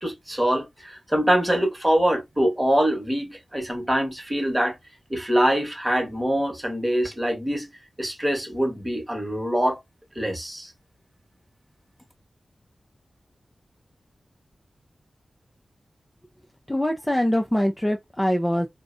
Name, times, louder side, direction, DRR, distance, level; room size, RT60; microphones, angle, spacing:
voice 1, 0.0-4.8 5.1-7.7 8.0-9.8 10.2-10.7, equal, 15° right, 1.1 m, -24 dB
voice 2, 16.7-18.7, left 1 dB, 10° left, 0.4 m, -23 dB
2.5 x 2.1 x 2.4 m
cardioid pair, 60°, 0 cm